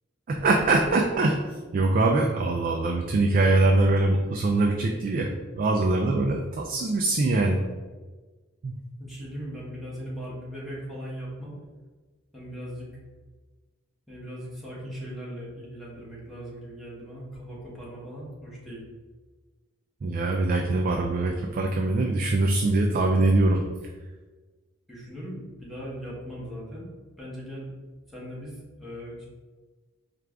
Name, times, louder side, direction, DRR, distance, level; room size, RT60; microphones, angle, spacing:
voice 1, 0.3-7.6 8.6-8.7 20.0-23.6, right 2 dB, 45° right, 2 dB, 0.3 m, -23 dB
voice 2, 9.0-11.5 12.3-12.9 14.1-18.8 24.9-26.9 27.2-27.7 28.1-29.3, equal, ahead, -7 dB, 1.2 m, -39 dB
4.5 x 2.4 x 3.4 m, 1.3 s
head